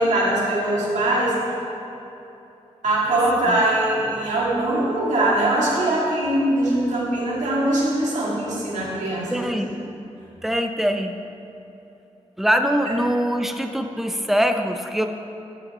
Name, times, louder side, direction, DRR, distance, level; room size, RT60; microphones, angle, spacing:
voice 1, 0.0-1.4 2.8-9.5, right 1 dB, 85° right, -6 dB, 2.4 m, -22 dB
voice 2, 9.3-9.8 10.4-11.1 12.4-15.1, equal, ahead, 5 dB, 0.5 m, -23 dB
13.5 x 7.9 x 3.1 m, 2.9 s
wide cardioid pair, 120°, 12 cm